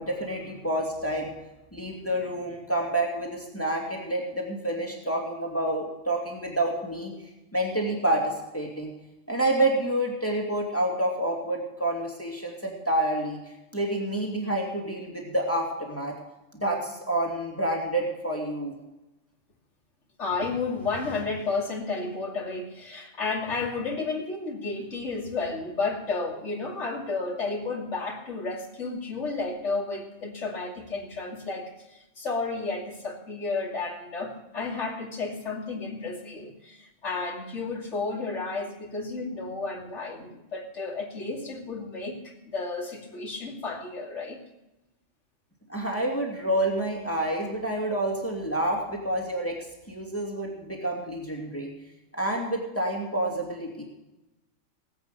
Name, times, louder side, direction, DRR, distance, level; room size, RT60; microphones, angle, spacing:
voice 1, 0.0-1.3 1.7-7.1 7.5-8.9 9.3-16.2 16.5-18.7 45.7-51.7 52.1-53.8, right 1 dB, 10° left, -1 dB, 2.6 m, -28 dB
voice 2, 20.2-44.4, left 3 dB, 70° left, -2 dB, 2.9 m, -32 dB
19.0 x 8.3 x 6.8 m, 0.99 s
omnidirectional pair, 1.3 m